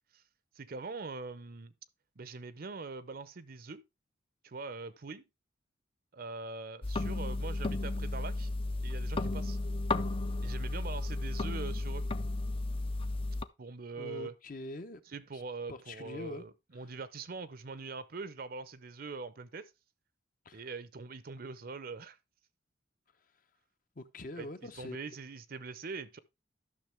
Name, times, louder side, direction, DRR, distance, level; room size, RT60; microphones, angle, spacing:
voice 1, 0.6-1.7 2.2-3.8 4.4-5.2 6.1-8.5 8.8-9.6 10.4-12.1 13.6-14.3 15.1-19.7 20.5-22.2 24.4-24.5 24.8-26.2, right 4 dB, 55° right, 0.7 m, -43 dB
sound 1, 6.8-13.4, left 2 dB, 30° left, 0.5 m, -33 dB
voice 2, 14.0-15.0 15.3-15.4 15.7-16.4 20.4-20.7 24.0-25.0, left 1 dB, 50° left, 0.9 m, -44 dB
12.0 x 6.1 x 3.4 m
head